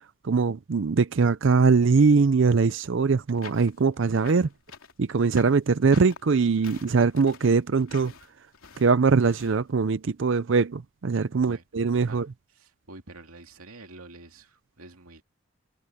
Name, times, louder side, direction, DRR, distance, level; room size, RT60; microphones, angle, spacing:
voice 1, 0.2-4.5 5.0-8.1 8.8-12.3, right 4 dB, 55° right, 0.5 m, -22 dB
sound 1, 3.4-9.6, left 6 dB, 70° left, 3.2 m, -47 dB
voice 2, 11.3-11.6 12.0-12.3 12.5-15.2, right 3 dB, 80° right, 2.5 m, -47 dB
head